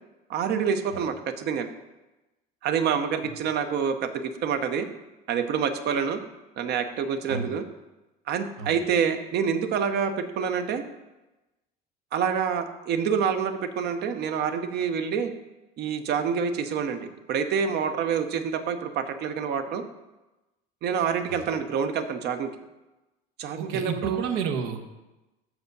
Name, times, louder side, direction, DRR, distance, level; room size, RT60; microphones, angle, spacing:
voice 1, 0.3-1.7 2.6-4.9 5.3-6.2 6.6-7.7 8.3-10.8 12.1-15.3 15.8-19.8 20.8-22.5 23.4-24.2, right 7 dB, 60° right, 9 dB, 0.8 m, -27 dB
voice 2, 23.6-24.9, right 6 dB, 80° right, 6 dB, 1.0 m, -31 dB
6.5 x 4.9 x 6.6 m, 1.0 s
cardioid pair, 120°, 19 cm